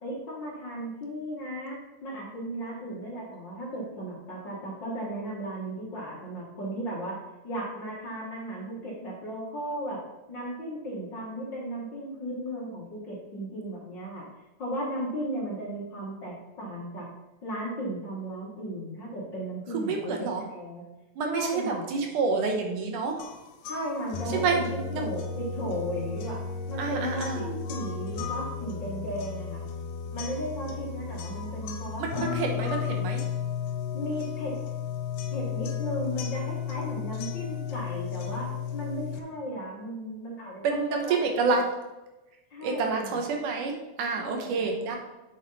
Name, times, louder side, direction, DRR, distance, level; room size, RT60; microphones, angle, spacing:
voice 1, 0.0-7.1 7.4-10.0 10.3-14.2 14.6-17.0 17.4-20.8 21.2-21.8 23.7-24.7 25.0-26.4 26.7-29.6 30.1-32.3 33.9-34.5 35.3-41.5 42.5-43.2 44.2-44.7, right 1 dB, 45° left, -4 dB, 1.9 m, -35 dB
voice 2, 19.7-20.5 21.2-23.2 24.3-24.6 24.9-25.1 26.8-27.5 32.0-33.2 40.6-41.7 42.6-45.0, right 4 dB, 80° right, 2 dB, 2.6 m, -28 dB
sound 1, 23.2-39.2, left 7 dB, 80° left, 2.3 m, -34 dB
7.2 x 6.2 x 4.1 m, 1.0 s
omnidirectional pair, 3.5 m